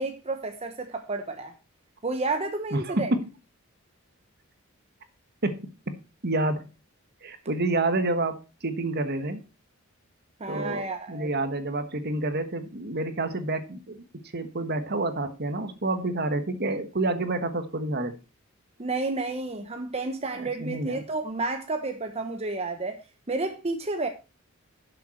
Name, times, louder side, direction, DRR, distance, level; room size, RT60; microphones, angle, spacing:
voice 1, 0.0-1.5 2.0-3.2 10.4-11.3 18.8-23.0 23.3-24.1, right 3 dB, 30° right, 0.9 m, -31 dB
voice 2, 2.7-3.0 5.4-5.9 6.2-6.7 7.2-9.4 10.5-14.0 14.3-18.1 20.3-21.0, right 2 dB, 50° right, 1.4 m, -29 dB
11.5 x 6.9 x 4.3 m
head